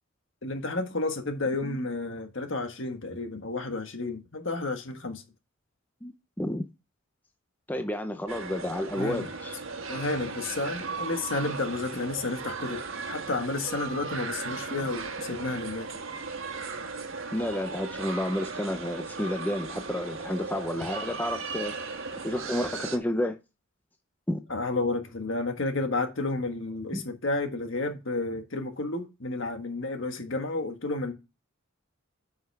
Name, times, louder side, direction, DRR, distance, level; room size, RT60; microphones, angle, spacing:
voice 1, 0.4-5.2 9.0-9.3 9.9-12.8 13.1-16.0 24.5-31.1, left 2 dB, 65° left, 1.6 m, -31 dB
voice 2, 7.7-9.6 17.3-21.7 22.2-23.4 24.3-24.4 26.9-27.1, left 1 dB, 10° left, 0.6 m, -31 dB
sound 1, 8.3-23.0, right 4 dB, 80° right, 1.4 m, -37 dB
10.0 x 5.7 x 3.4 m
head